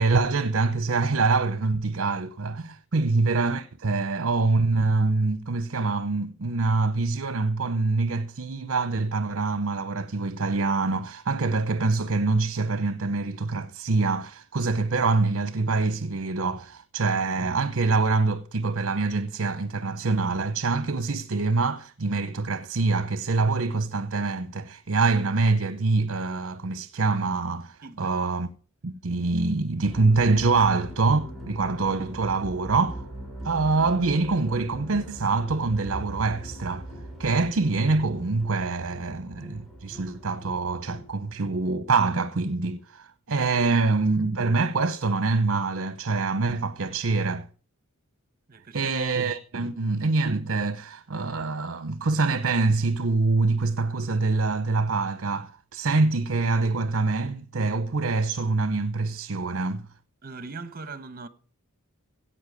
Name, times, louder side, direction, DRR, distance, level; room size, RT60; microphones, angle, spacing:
voice 1, 0.0-28.5 28.8-33.0 33.4-36.9 37.2-47.5 48.7-59.8, right 3 dB, 60° right, 0.8 m, -25 dB
voice 2, 27.8-28.1 48.5-48.9 49.6-49.7 60.2-61.3, right 3 dB, 40° right, 1.1 m, -41 dB
sound 1, 29.8-41.7, right 1 dB, ahead, 4.6 m, -41 dB
16.5 x 5.6 x 9.2 m
head